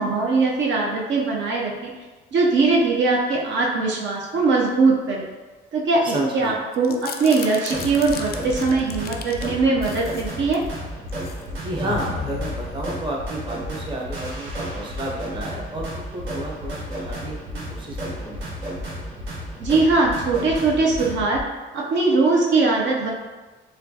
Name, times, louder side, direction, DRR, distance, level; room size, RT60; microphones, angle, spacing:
voice 1, 0.0-1.9 2.3-5.3 5.7-10.6 19.6-21.4 21.7-23.1, right 3 dB, 70° right, -2 dB, 0.6 m, -21 dB
voice 2, 6.0-6.6 11.5-15.9 16.1-17.4 17.7-18.5, right 1 dB, 25° right, -2 dB, 0.8 m, -31 dB
sound 1, 6.7-9.5 9.8-10.7 11.1-11.4 11.8-13.4, left 7 dB, 50° left, 0.4 m, -35 dB
sound 2, 7.3-21.4, equal, 85° right, 1.1 m, -32 dB
4.2 x 2.3 x 2.7 m, 1.3 s
cardioid pair, 90°, 20 cm